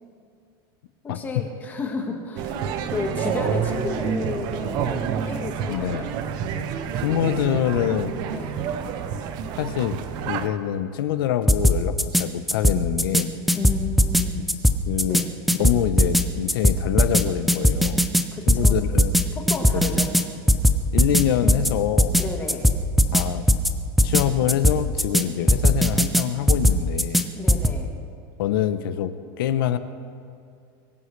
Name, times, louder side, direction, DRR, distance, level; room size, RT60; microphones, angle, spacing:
voice 1, 1.0-2.5 2.9-6.1 8.3-8.6 13.5-14.4 15.0-15.3 18.3-18.8 19.3-20.1 21.4-21.6 22.2-22.7 27.3-27.9, left 4 dB, 15° left, 2 dB, 1.5 m, -32 dB
sound 1, 2.4-10.5, right 7 dB, 35° right, 0.7 m, -28 dB
voice 2, 5.7-6.1 7.0-8.1 9.6-10.0 10.2-13.3 14.9-15.2 15.6-18.0 18.5-19.1 19.7-20.0 20.9-22.2 23.1-23.5 24.0-27.3 28.4-29.8, left 11 dB, 75° left, 11 dB, 0.9 m, -25 dB
sound 2, 11.5-12.2 12.5-13.2 13.5-14.2 14.5-15.2 15.5-16.2 16.5-17.2 17.5-18.2 18.5-19.2 19.5-20.2 20.5-21.2 21.5-21.7 22.0-22.2 22.5-23.2 23.5-23.7 24.0-24.2 24.5-25.2 25.5-26.2 26.5-27.2 27.5-27.7, equal, ahead, 0.5 m, -18 dB
23.5 x 15.0 x 3.3 m, 2.3 s
supercardioid pair, 170°, 12 cm